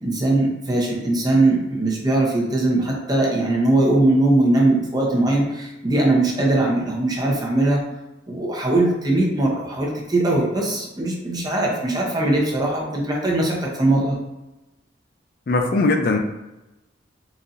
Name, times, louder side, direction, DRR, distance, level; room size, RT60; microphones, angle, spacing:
voice 1, 0.0-7.8 8.3-14.2, right 2 dB, 20° right, -2 dB, 0.7 m, -20 dB
voice 2, 15.5-16.2, left 3 dB, 55° left, 5 dB, 0.4 m, -19 dB
4.0 x 2.7 x 2.5 m, 1.0 s
head